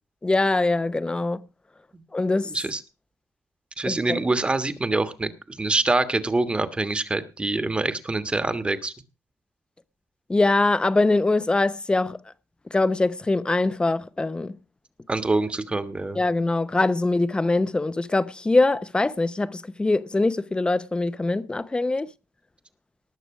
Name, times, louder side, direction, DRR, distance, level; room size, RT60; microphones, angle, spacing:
voice 1, 0.2-1.4 2.1-2.5 3.8-4.2 10.3-12.2 12.7-14.5 16.2-22.1, left 2 dB, 15° left, 0.8 m, -23 dB
voice 2, 2.5-2.8 3.8-8.9 15.1-16.2, right 2 dB, 20° right, 1.4 m, -25 dB
19.0 x 6.7 x 4.8 m
cardioid pair, 110°, 6 cm